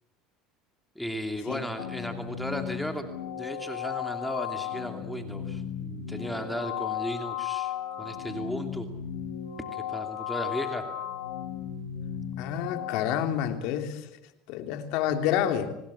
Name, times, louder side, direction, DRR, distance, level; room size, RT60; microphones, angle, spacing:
voice 1, 1.0-3.1 3.4-7.7 8.0-8.9 9.7-10.8, equal, ahead, 5 dB, 2.7 m, -35 dB
sound 1, 1.8-13.1, left 10 dB, 90° left, 7.2 m, -35 dB
voice 2, 12.4-14.0 14.5-15.7, left 10 dB, 70° left, 7 dB, 3.1 m, -28 dB
25.5 x 19.5 x 8.6 m, 0.91 s
supercardioid pair, 105°, 0 cm